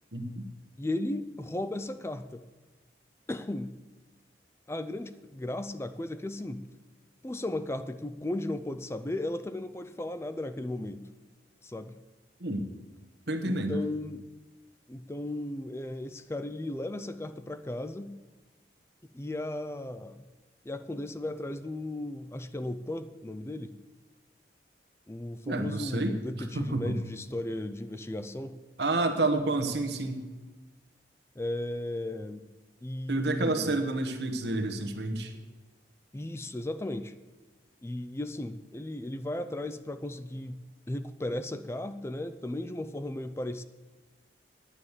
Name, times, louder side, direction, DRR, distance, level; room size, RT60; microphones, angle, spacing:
voice 1, 0.1-0.4 12.4-12.7 13.3-13.8 25.4-27.0 28.8-30.2 33.1-35.3, right 2 dB, 65° right, 5 dB, 1.2 m, -29 dB
voice 2, 0.8-2.4 3.3-3.7 4.7-6.6 7.2-11.0 11.6-11.9 13.4-14.2 14.9-18.1 19.1-20.2 20.6-23.7 25.1-28.6 31.4-32.4 32.8-33.9 36.1-37.1 37.8-40.6 40.9-43.6, left 1 dB, 15° left, 11 dB, 0.4 m, -35 dB
9.9 x 8.1 x 7.2 m, 1.2 s
head